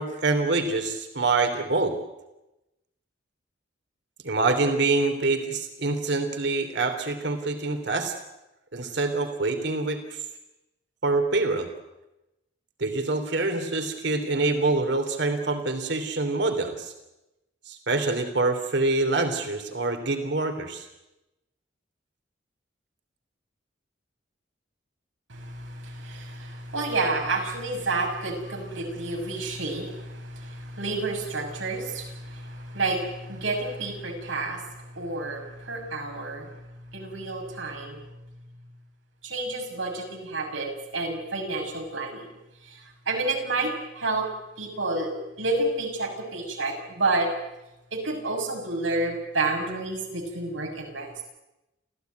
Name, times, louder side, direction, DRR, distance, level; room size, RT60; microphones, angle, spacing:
voice 1, 0.0-2.0 4.2-8.1 8.7-10.2 11.0-11.7 12.8-16.9 17.7-20.8, right 3 dB, 65° right, 7 dB, 3.1 m, -25 dB
voice 2, 25.3-36.5 36.9-38.0 39.2-42.3 42.6-44.3 44.6-47.3 47.9-51.1, right 2 dB, 85° right, 2 dB, 6.4 m, -30 dB
27.5 x 16.0 x 9.4 m, 0.97 s
head